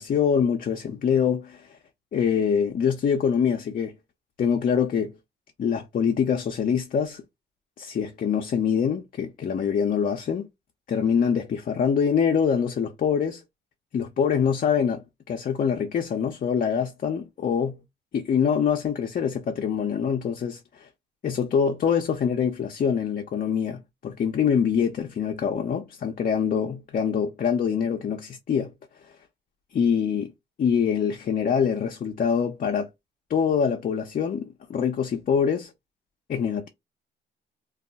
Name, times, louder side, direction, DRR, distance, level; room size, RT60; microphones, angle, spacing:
voice 1, 0.0-1.8 2.1-3.9 4.4-5.2 5.6-7.2 7.8-10.5 10.9-13.4 13.9-17.8 18.1-20.9 21.2-28.7 29.7-30.3 30.6-32.9 33.3-35.7 36.3-36.7, left 7 dB, 45° left, 0.6 m, -24 dB
2.3 x 2.1 x 3.9 m
cardioid pair, 90°, 20 cm